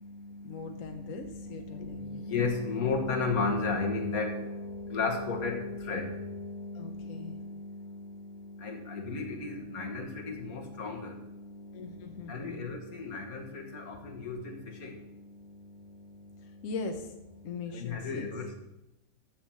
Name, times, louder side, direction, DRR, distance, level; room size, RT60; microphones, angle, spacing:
voice 1, 0.4-2.3 6.7-7.4 11.7-12.7 16.4-17.1 17.4-18.5, left 4 dB, 65° left, 5 dB, 1.3 m, -41 dB
voice 2, 1.7-7.5 8.6-11.1 12.3-14.5 14.8-14.9 17.8-18.6, left 4 dB, 90° left, 3 dB, 1.9 m, -33 dB
7.6 x 7.3 x 7.3 m, 0.92 s
omnidirectional pair, 1.5 m